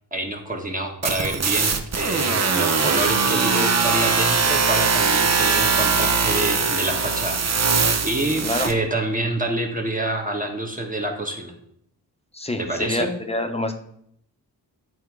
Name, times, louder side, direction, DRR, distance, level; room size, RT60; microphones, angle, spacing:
voice 1, 0.1-7.4 8.0-11.5 12.6-13.1, right 1 dB, 20° right, 2 dB, 1.3 m, -27 dB
sound 1, 1.0-8.7, right 5 dB, 40° right, 0.8 m, -21 dB
voice 2, 12.3-13.7, left 2 dB, 15° left, 6 dB, 0.9 m, -26 dB
9.1 x 3.5 x 4.7 m, 0.69 s
cardioid pair, 70°, 40 cm